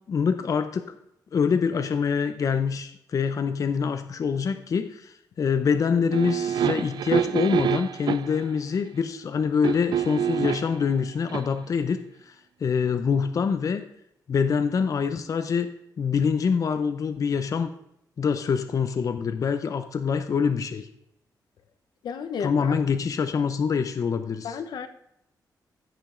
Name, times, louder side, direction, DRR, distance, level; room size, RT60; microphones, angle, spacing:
voice 1, 0.1-0.8 1.3-12.0 12.6-13.8 14.3-15.7 16.0-17.7 18.2-20.9 22.4-24.6, left 6 dB, 50° left, 9 dB, 0.6 m, -25 dB
sound 1, 6.1-8.4 9.6-10.8 11.3-11.4, right 9 dB, 80° right, 0.4 m, -27 dB
voice 2, 22.0-22.7 24.4-24.9, left 6 dB, 85° left, 9 dB, 0.8 m, -32 dB
15.0 x 5.1 x 3.8 m, 0.76 s
wide cardioid pair, 120°, 7 cm